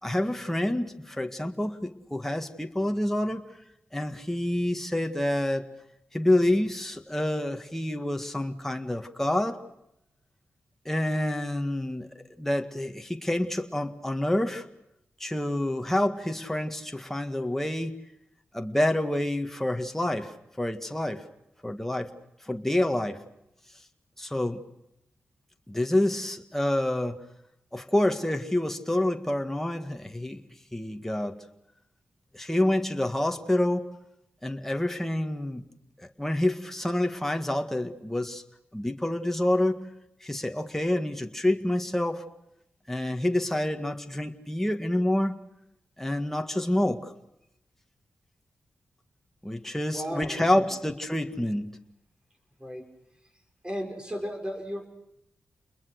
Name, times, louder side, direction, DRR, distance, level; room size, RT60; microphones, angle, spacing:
voice 1, 0.0-3.5 3.9-5.7 6.1-9.6 10.9-14.7 15.2-18.0 18.5-21.2 21.6-22.1 22.5-23.2 24.2-24.6 25.7-27.2 27.7-30.4 30.7-31.4 32.3-33.9 34.4-35.6 36.0-38.4 38.7-39.8 40.2-42.3 42.9-45.4 46.0-47.1 49.4-51.8, left 1 dB, 5° left, 5 dB, 1.9 m, -28 dB
voice 2, 49.9-50.6 52.6-52.8 53.6-54.9, equal, 20° right, 4 dB, 6.3 m, -35 dB
29.5 x 21.5 x 6.5 m, 0.81 s
cardioid pair, 55°, 5 cm